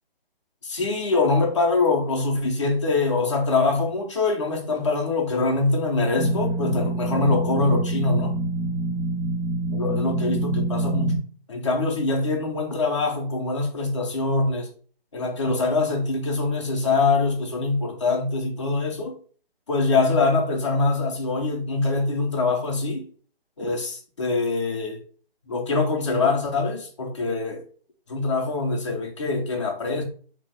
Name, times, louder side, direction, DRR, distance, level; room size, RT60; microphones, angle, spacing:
voice 1, 0.6-8.4 9.7-11.2 11.5-14.7 15.1-19.2 19.7-23.0 23.6-25.0 25.5-27.6 28.1-30.0, left 3 dB, 30° left, 0.7 m, -24 dB
sound 1, 6.2-11.2, right 2 dB, 85° right, 1.1 m, -26 dB
2.8 x 2.3 x 3.6 m
hypercardioid pair, 170°, 30 cm